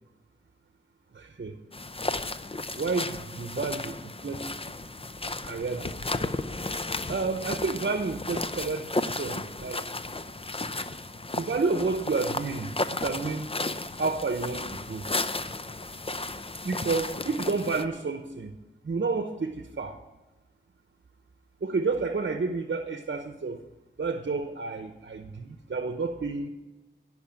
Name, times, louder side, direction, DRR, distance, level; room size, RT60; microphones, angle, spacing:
voice 1, 1.1-1.5 2.7-4.6 5.4-6.3 7.1-9.8 11.4-13.5 14.0-15.1 16.6-18.5 18.8-20.0 21.6-23.6 24.0-26.5, right 4 dB, 70° right, 6 dB, 0.9 m, -30 dB
sound 1, 1.7-17.8, left 2 dB, 30° left, 0.7 m, -34 dB
16.5 x 6.0 x 8.8 m, 1.1 s
wide cardioid pair, 70°, 19 cm